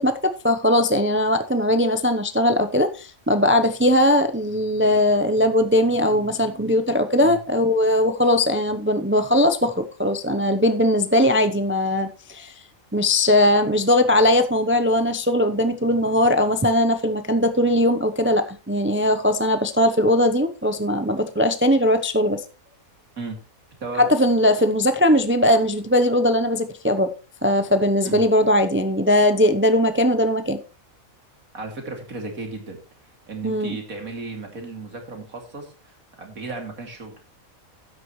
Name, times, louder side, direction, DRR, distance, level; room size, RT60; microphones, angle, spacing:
voice 1, 0.0-12.5 12.9-22.4 24.0-27.1 27.4-30.6 33.4-33.8, left 1 dB, 15° right, 0.4 m, -20 dB
voice 2, 31.5-32.8 33.3-37.2, right 3 dB, 85° right, 3.1 m, -34 dB
12.5 x 9.6 x 3.1 m
omnidirectional pair, 1.4 m